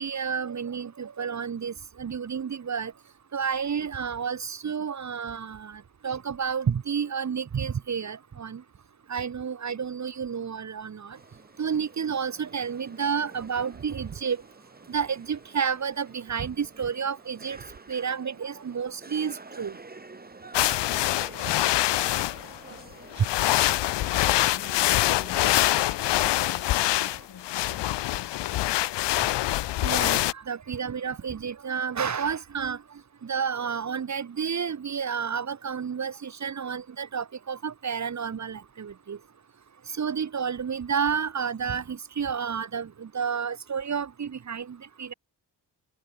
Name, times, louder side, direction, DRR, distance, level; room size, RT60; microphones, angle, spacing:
voice 1, 0.0-2.9 3.3-8.6 9.1-11.2 11.6-14.4 14.9-17.6 17.9-19.8 23.2-23.3 29.8-32.8 33.2-39.2 39.9-45.1, right 6 dB, 40° right, 1.1 m, -30 dB
sound 1, 11.2-27.3, right 3 dB, 20° right, 3.0 m, -49 dB
sound 2, 20.5-22.6 23.1-30.3, left 16 dB, 75° left, 0.5 m, -25 dB
voice 2, 21.1-21.6 23.6-29.0, left 8 dB, 55° left, 2.1 m, -47 dB
cardioid pair, 100°, 42 cm